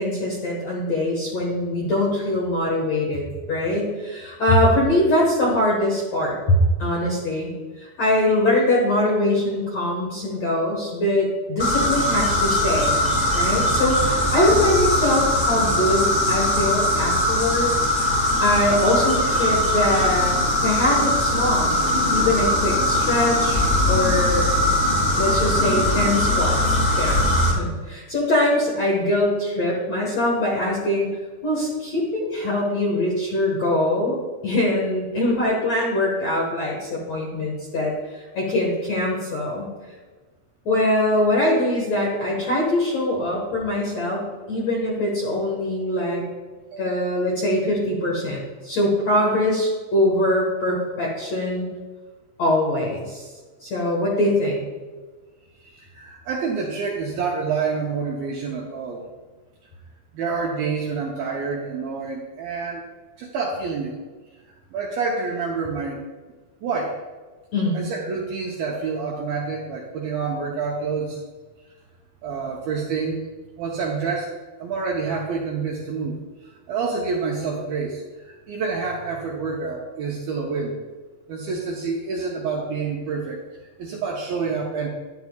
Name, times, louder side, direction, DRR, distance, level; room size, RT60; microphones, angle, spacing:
voice 1, 0.0-7.5 7.8-13.0 13.3-21.8 22.1-23.6 23.9-24.5 25.2-31.1 31.4-34.2 34.4-39.7 40.7-46.2 46.8-51.7 52.4-53.3 53.6-54.6 67.5-67.8, left 1 dB, 60° left, -4 dB, 1.8 m, -22 dB
sound 1, 11.6-27.5, left 1 dB, 20° left, 1.5 m, -21 dB
voice 2, 46.7-47.0 55.6-59.1 60.1-62.8 63.2-63.9 64.7-66.0 66.6-67.0 67.7-71.2 72.2-73.3 73.6-74.3 74.6-80.8 81.3-83.4 83.8-84.9, right 4 dB, 75° right, -2 dB, 2.2 m, -28 dB
11.5 x 10.5 x 2.4 m, 1.3 s
omnidirectional pair, 5.3 m